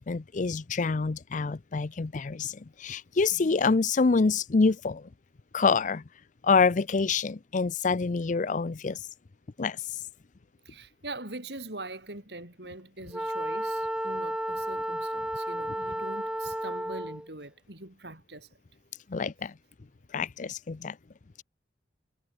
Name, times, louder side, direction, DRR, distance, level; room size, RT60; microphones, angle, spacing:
voice 1, 0.0-5.1 5.5-6.0 6.4-9.0 9.6-10.0 19.1-19.5 20.1-21.0, left 4 dB, 45° left, 0.5 m, -26 dB
voice 2, 3.3-3.7 10.6-18.5, right 2 dB, 70° right, 6.1 m, -43 dB
Wind instrument woodwind instrument, 13.1-17.3, right 1 dB, 5° right, 2.2 m, -32 dB
head